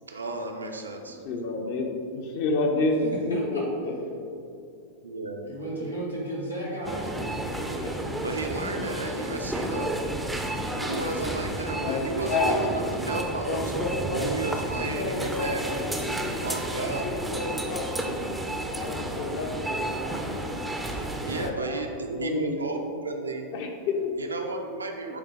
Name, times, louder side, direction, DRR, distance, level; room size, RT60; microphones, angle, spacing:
voice 1, 0.1-1.2 5.0-5.4 8.2-10.0 10.8-13.7 14.1-15.9 16.4-17.1 20.9-23.5 24.2-25.2, right 3 dB, 75° right, 4 dB, 0.6 m, -33 dB
voice 2, 1.2-4.2 5.7-5.9 10.3-11.0 11.8-12.6 13.3-14.3 14.8-16.4 16.9-18.3 18.7-20.0 21.3-21.8 22.1-22.7 23.5-24.1, left 3 dB, 50° left, 2 dB, 0.9 m, -30 dB
voice 3, 3.3-3.6 5.5-8.2, right 1 dB, 80° left, -4 dB, 1.5 m, -34 dB
sound 1, 6.8-21.5, right 1 dB, 5° right, 0.6 m, -31 dB
9.7 x 3.6 x 3.6 m, 2.5 s
figure-of-eight pair, 90°, 0 cm